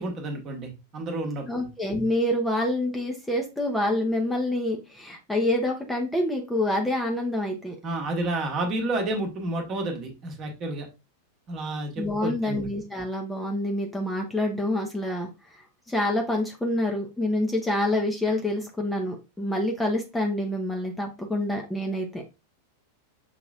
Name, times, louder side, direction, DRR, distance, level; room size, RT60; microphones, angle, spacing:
voice 1, 0.0-1.7 7.8-10.9 11.5-12.7, right 2 dB, 35° right, 3 dB, 1.2 m, -30 dB
voice 2, 1.5-7.8 12.0-15.3 15.9-22.3, left 1 dB, 5° left, 1 dB, 0.8 m, -27 dB
5.8 x 3.0 x 2.4 m, 0.27 s
figure-of-eight pair, 90°, 0 cm